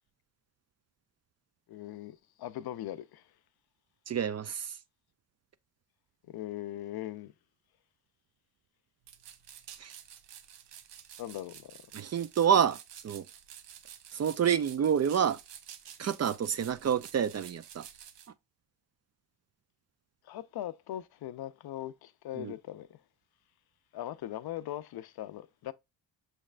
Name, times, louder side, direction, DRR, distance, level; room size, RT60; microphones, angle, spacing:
voice 1, 1.7-3.2 6.2-7.3 11.2-11.8 20.2-23.0 23.9-25.7, left 13 dB, 60° left, 0.5 m, -40 dB
voice 2, 4.1-4.8 9.8-9.9 11.9-12.8 13.0-13.2 14.1-15.4 16.0-17.9 22.3-22.5, right 8 dB, 40° right, 0.4 m, -28 dB
sound 1, 9.0-18.3, right 9 dB, 75° right, 0.7 m, -51 dB
6.3 x 3.3 x 2.4 m
cardioid pair, 70°, 44 cm